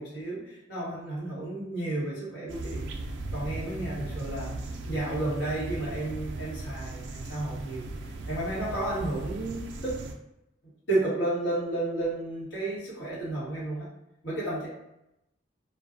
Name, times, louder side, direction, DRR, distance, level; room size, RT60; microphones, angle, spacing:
voice 1, 0.0-2.9 3.3-4.5 4.8-7.9 8.3-10.0 10.9-13.9 14.2-14.7, right 2 dB, 85° left, -8 dB, 1.4 m, -32 dB
sound 1, 2.5-10.1, right 2 dB, 70° right, 0.3 m, -37 dB
2.5 x 2.2 x 2.5 m, 0.87 s
head